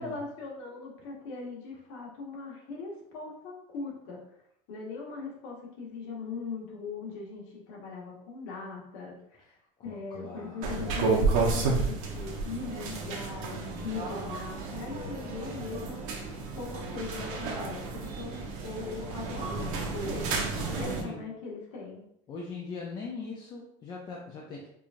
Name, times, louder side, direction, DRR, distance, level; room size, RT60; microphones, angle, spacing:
voice 1, 0.0-4.2 4.7-9.6 9.8-16.2 16.5-22.0, left 4 dB, 70° left, -2 dB, 1.3 m, -40 dB
voice 2, 9.8-10.9 14.9-15.3 20.7-21.2 22.3-24.7, left 4 dB, 25° left, -2 dB, 0.4 m, -41 dB
sound 1, 10.6-21.0, right 4 dB, 70° right, 0.8 m, -32 dB
4.7 x 2.5 x 2.5 m, 0.73 s
cardioid pair, 160°, 18 cm